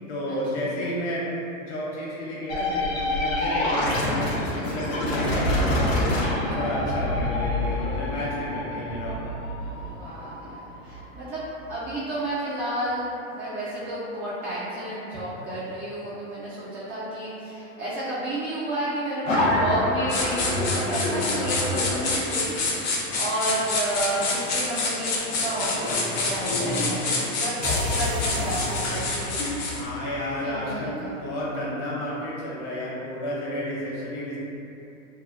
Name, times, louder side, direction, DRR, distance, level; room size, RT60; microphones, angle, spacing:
voice 1, 0.1-1.3 1.6-4.3 4.6-5.8 6.3-9.2 29.7-34.4, equal, 55° left, -6 dB, 1.0 m, -31 dB
sound 1, 2.5-11.9 19.2-22.1, left 1 dB, 80° left, 0.8 m, -26 dB
voice 2, 9.8-22.6 23.1-29.4 30.4-31.2, right 1 dB, 25° right, -9 dB, 0.3 m, -31 dB
sound 2, 20.1-29.8, left 3 dB, 40° left, 0.6 m, -27 dB
sound 3, 27.6-31.1, left 2 dB, 40° right, 0.7 m, -32 dB
2.8 x 2.2 x 2.4 m, 2.8 s
hypercardioid pair, 125°, 39 cm